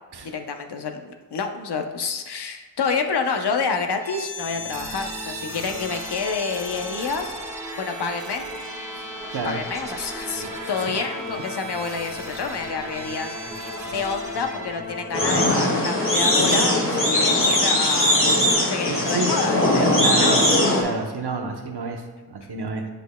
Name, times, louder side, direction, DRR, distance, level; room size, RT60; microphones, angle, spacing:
voice 1, 0.2-7.3 7.8-8.5 9.4-13.6 13.9-18.2 18.7-19.9 20.2-20.4, left 5 dB, 75° left, 5 dB, 0.7 m, -28 dB
sound 1, 4.0-17.8, equal, 10° right, 1.3 m, -35 dB
voice 2, 9.3-9.6 10.4-10.7 18.9-19.4 19.8-20.5 20.8-22.9, right 4 dB, 75° right, 4 dB, 0.9 m, -30 dB
sound 2, 15.1-20.8, left 1 dB, 30° left, 1.6 m, -20 dB
10.0 x 5.1 x 2.2 m, 1.3 s
wide cardioid pair, 70°, 40 cm